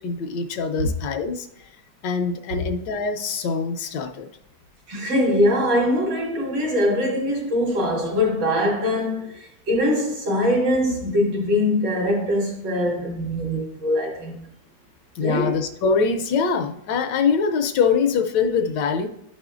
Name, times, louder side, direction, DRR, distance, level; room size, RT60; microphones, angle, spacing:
voice 1, 0.0-1.5 2.0-4.3 15.2-19.1, left 5 dB, 75° left, 1.3 m, -23 dB
voice 2, 4.9-14.4 15.2-15.5, left 1 dB, 75° right, 2.3 m, -22 dB
11.0 x 4.9 x 2.4 m
omnidirectional pair, 2.0 m